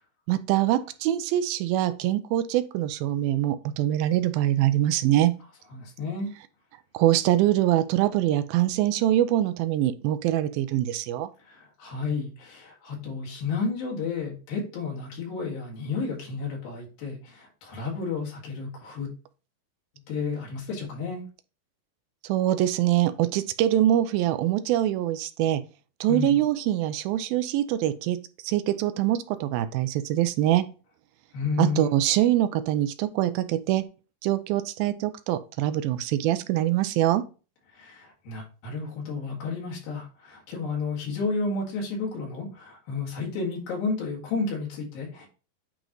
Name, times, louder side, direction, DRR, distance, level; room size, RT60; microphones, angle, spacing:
voice 1, 0.3-5.3 6.9-11.3 22.2-25.6 26.0-28.2 28.4-30.6 31.6-33.9 34.2-37.2, right 13 dB, 90° right, 11 dB, 2.4 m, -24 dB
voice 2, 5.7-6.3 11.5-19.1 20.1-21.2 26.1-26.4 31.3-31.9 37.7-45.3, left 4 dB, 85° left, -3 dB, 3.9 m, -32 dB
9.0 x 3.1 x 3.8 m, 0.34 s
omnidirectional pair, 4.1 m